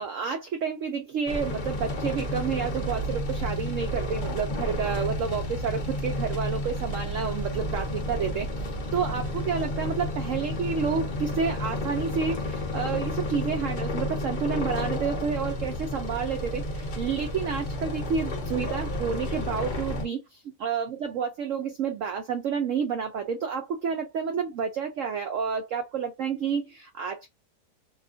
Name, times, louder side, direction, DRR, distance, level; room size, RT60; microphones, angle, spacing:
voice 1, 0.0-20.2 20.6-27.3, right 6 dB, 70° right, 0.7 m, -30 dB
sound 1, 1.3-20.1, left 1 dB, 55° left, 0.5 m, -31 dB
2.7 x 2.4 x 2.5 m
omnidirectional pair, 1.9 m